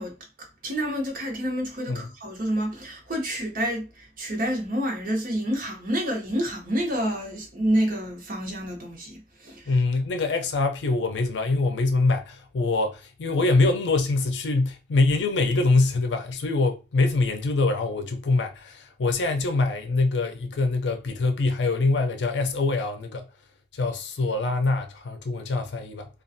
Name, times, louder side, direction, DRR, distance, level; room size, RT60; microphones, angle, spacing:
voice 1, 0.0-9.7, equal, 50° right, 0.8 m, -28 dB
voice 2, 9.7-23.3 23.7-26.1, left 3 dB, 85° left, 0.5 m, -24 dB
2.4 x 2.3 x 2.6 m
head